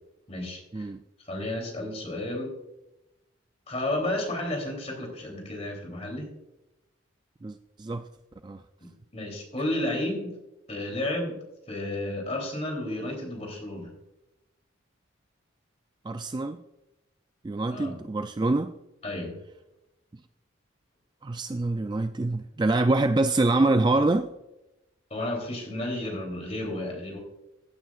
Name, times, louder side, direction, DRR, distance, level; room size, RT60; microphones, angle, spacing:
voice 1, 0.3-0.9 1.2-2.5 3.7-6.3 8.8-10.3 10.7-11.4 11.7-13.9 17.7-18.0 19.0-19.4 25.1-27.2, left 1 dB, 30° left, 1 dB, 3.2 m, -32 dB
voice 2, 7.4-8.0 8.4-8.6 16.0-16.6 17.4-18.7 21.2-24.3, right 2 dB, 20° right, 8 dB, 0.3 m, -25 dB
16.0 x 9.1 x 2.4 m, 0.93 s
head